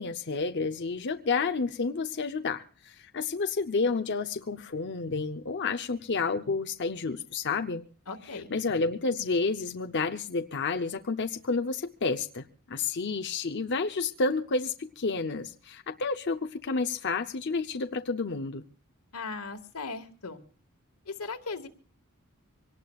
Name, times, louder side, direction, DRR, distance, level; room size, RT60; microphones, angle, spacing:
voice 1, 0.0-7.8 8.5-18.6, left 4 dB, 50° left, 5 dB, 0.7 m, -30 dB
voice 2, 8.1-8.5 19.1-20.4 21.1-21.7, left 4 dB, 80° left, 7 dB, 1.9 m, -38 dB
25.0 x 18.5 x 2.4 m, 0.43 s
head